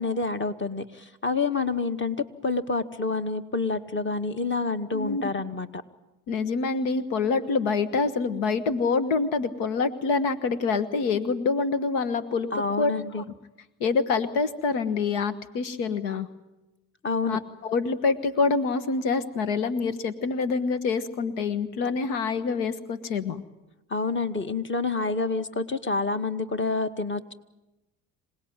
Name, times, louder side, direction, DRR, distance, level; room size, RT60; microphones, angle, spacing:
voice 1, 0.0-2.2 2.4-5.8 12.5-13.2 17.0-17.4 23.9-27.3, left 3 dB, 30° left, 8 dB, 2.0 m, -28 dB
voice 2, 6.3-12.5 12.8-12.9 13.8-16.3 17.2-23.4, left 4 dB, 85° left, 11 dB, 1.4 m, -26 dB
26.5 x 18.5 x 9.3 m, 1.0 s
hypercardioid pair, 60°, 39 cm